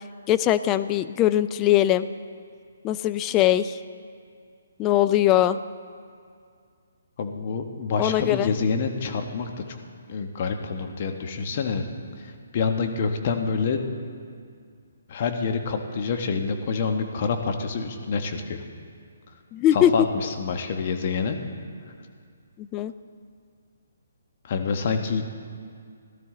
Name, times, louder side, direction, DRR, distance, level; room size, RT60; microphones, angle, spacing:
voice 1, 0.3-2.1 2.8-3.8 4.8-5.6 8.0-8.5 19.5-19.9 22.6-22.9, left 12 dB, 20° left, 13 dB, 0.4 m, -21 dB
voice 2, 7.2-9.8 10.1-11.8 12.2-13.8 15.1-18.6 19.7-21.4 24.4-25.2, left 5 dB, 45° left, 5 dB, 1.2 m, -27 dB
17.5 x 12.5 x 3.8 m, 2.2 s
hypercardioid pair, 150°, 0 cm